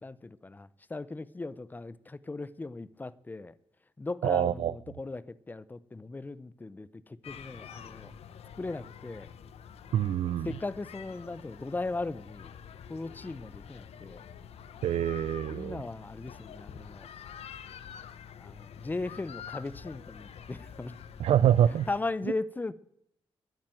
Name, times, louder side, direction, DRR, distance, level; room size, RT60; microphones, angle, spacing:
voice 1, 0.0-3.5 4.0-8.1 8.6-9.3 10.4-12.5 12.9-14.2 15.5-17.1 18.4-20.9 21.9-22.7, left 3 dB, 15° left, 0.6 m, -37 dB
voice 2, 4.2-4.7 9.9-10.5 14.8-15.8 21.2-21.9, right 10 dB, 80° right, 0.4 m, -25 dB
sound 1, 7.2-22.0, left 8 dB, 80° left, 0.9 m, -47 dB
11.0 x 9.0 x 9.1 m
wide cardioid pair, 135°, 10 cm